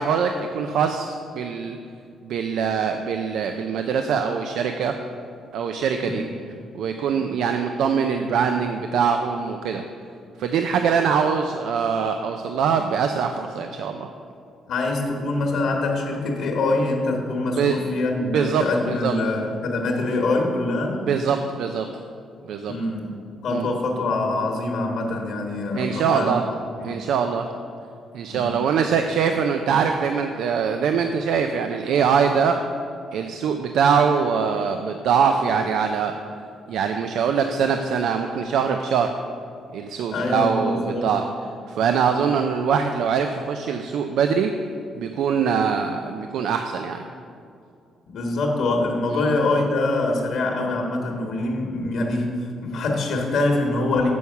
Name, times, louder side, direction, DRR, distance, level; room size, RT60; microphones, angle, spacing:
voice 1, 0.0-1.8 2.2-4.9 5.5-6.2 6.7-9.8 10.4-14.1 17.6-17.7 18.3-18.7 19.0-19.2 21.1-21.9 22.5-22.7 23.5-23.7 25.8-26.4 26.8-27.5 28.1-32.6 33.1-36.1 36.7-39.1 39.7-41.2 41.7-44.6 44.9-47.0 49.1-49.2, right 6 dB, 80° right, 6 dB, 0.4 m, -23 dB
voice 2, 6.0-6.4 7.1-7.2 14.7-21.0 22.7-23.1 23.4-26.3 26.8-26.9 28.3-28.6 40.1-41.1 48.1-52.3 52.6-54.1, left 2 dB, 75° left, 1 dB, 1.3 m, -24 dB
7.0 x 6.3 x 5.6 m, 2.4 s
cardioid pair, 90°, 0 cm